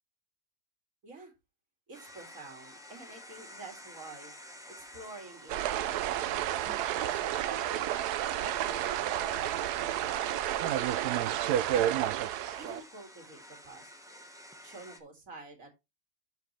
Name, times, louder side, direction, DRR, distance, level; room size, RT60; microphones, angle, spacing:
sound 1, 1.9-15.0, equal, ahead, 0.9 m, -51 dB
voice 1, 1.9-4.3 4.7-12.0 12.6-14.2 14.6-15.7, right 3 dB, 55° right, 4 dB, 2.6 m, -50 dB
sound 2, 5.5-12.8, right 12 dB, 75° right, 1.1 m, -30 dB
12.5 x 4.7 x 3.1 m, 0.24 s
omnidirectional pair, 1.8 m